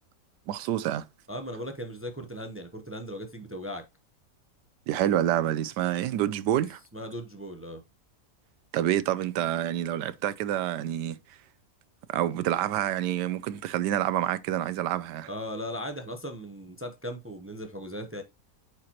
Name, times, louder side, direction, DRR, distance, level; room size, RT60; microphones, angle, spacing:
voice 1, 0.5-1.0 4.9-6.8 8.7-11.2 12.1-15.3, right 12 dB, 90° right, 1.2 m, -27 dB
voice 2, 1.3-3.8 6.9-7.8 15.3-18.2, equal, 15° right, 0.4 m, -37 dB
8.7 x 4.5 x 2.9 m
omnidirectional pair, 1.8 m